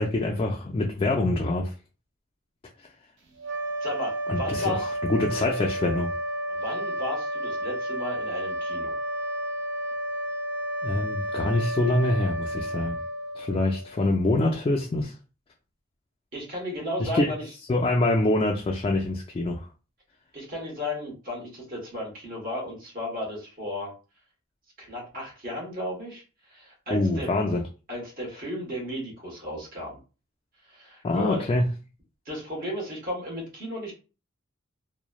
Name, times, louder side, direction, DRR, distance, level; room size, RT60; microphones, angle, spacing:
voice 1, 0.0-1.7 4.3-6.1 10.8-13.0 13.4-15.1 17.0-17.3 17.7-19.7 26.9-27.6 31.0-31.7, left 2 dB, 25° left, 0.3 m, -25 dB
sound 1, 3.4-14.0, equal, 60° right, 0.5 m, -31 dB
voice 2, 3.8-4.9 6.5-8.9 16.3-17.4 20.3-23.9 24.8-26.2 26.5-27.3 27.9-30.0 30.7-31.4 32.2-33.9, left 1 dB, 45° right, 1.2 m, -34 dB
3.0 x 2.0 x 2.3 m
head